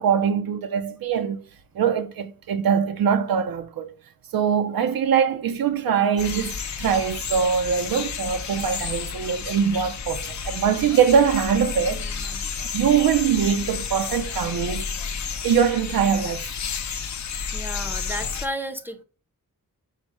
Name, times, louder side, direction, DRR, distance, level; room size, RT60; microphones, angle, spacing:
voice 1, 0.0-1.4 1.8-3.9 4.3-12.1 12.7-14.9 15.4-16.5, right 7 dB, 80° right, 0.5 m, -22 dB
sound 1, 6.2-18.5, left 6 dB, 55° left, 0.5 m, -31 dB
voice 2, 11.9-12.4 17.5-19.0, equal, 5° right, 0.5 m, -34 dB
5.6 x 2.0 x 4.6 m
wide cardioid pair, 120°, 35 cm